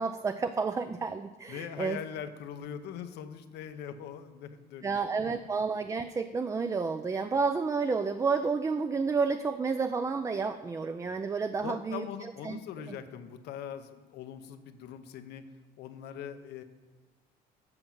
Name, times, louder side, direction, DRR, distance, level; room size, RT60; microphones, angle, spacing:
voice 1, 0.0-2.0 4.8-12.0 12.4-12.6, right 4 dB, 20° right, 9 dB, 0.3 m, -30 dB
voice 2, 1.5-5.3 11.0-11.2 11.6-15.4 15.8-16.6, left 8 dB, 80° left, 9 dB, 0.8 m, -42 dB
7.9 x 5.9 x 7.2 m, 1.2 s
cardioid pair, 110°, 17 cm